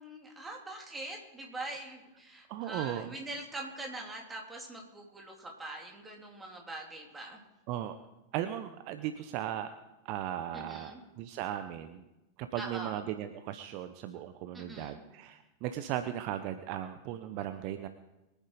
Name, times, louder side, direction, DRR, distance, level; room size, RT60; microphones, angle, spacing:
voice 1, 0.0-7.4 10.5-11.0 12.5-13.0 14.5-15.0, right 2 dB, 10° right, 0 dB, 3.5 m, -43 dB
voice 2, 2.5-3.1 7.7-7.9 8.3-9.7 10.0-12.1 12.4-17.9, right 11 dB, 45° right, 10 dB, 0.8 m, -37 dB
23.0 x 9.1 x 4.9 m, 1.0 s
figure-of-eight pair, 90°, 0 cm